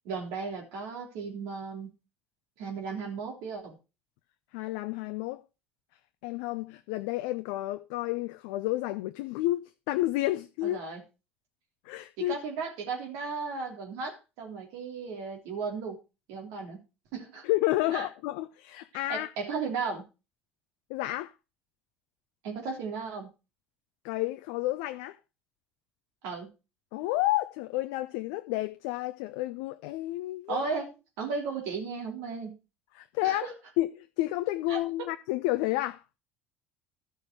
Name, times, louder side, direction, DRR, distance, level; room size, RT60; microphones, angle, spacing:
voice 1, 0.1-2.0 2.6-3.8 10.6-11.0 12.2-16.0 16.3-16.8 17.1-17.4 17.9-18.1 19.1-20.1 22.4-23.3 26.2-26.5 30.5-32.5 33.2-33.5 34.7-35.1, right 5 dB, 60° right, 3.5 m, -35 dB
voice 2, 4.5-5.4 6.2-10.8 11.8-12.3 17.4-19.3 20.9-21.3 24.0-25.2 26.9-30.6 32.9-33.5 33.8-36.0, left 17 dB, 60° left, 0.6 m, -30 dB
13.0 x 6.5 x 4.6 m
figure-of-eight pair, 60°, 6 cm